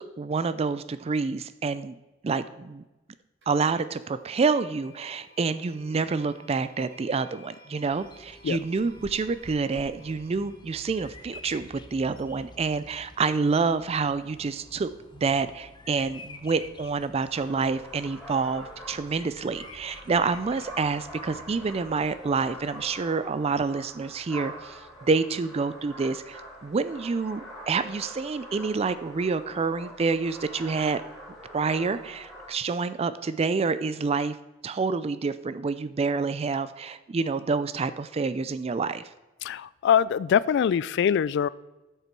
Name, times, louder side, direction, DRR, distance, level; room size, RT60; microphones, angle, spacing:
voice 1, 0.0-1.9 2.2-2.8 3.5-31.1 31.5-34.4 34.6-39.1, right 4 dB, 30° right, 14 dB, 0.4 m, -28 dB
sound 1, 3.4-3.5 4.3-15.3, equal, 60° right, 2.8 m, -57 dB
Bird vocalization bird call bird song, 7.9-23.0, left 2 dB, 25° left, 0.7 m, -50 dB
sound 2, 17.3-32.5, equal, ahead, 4.1 m, -44 dB
voice 2, 39.4-41.5, left 8 dB, 60° left, 18 dB, 0.3 m, -23 dB
13.0 x 6.7 x 4.5 m, 1.1 s
head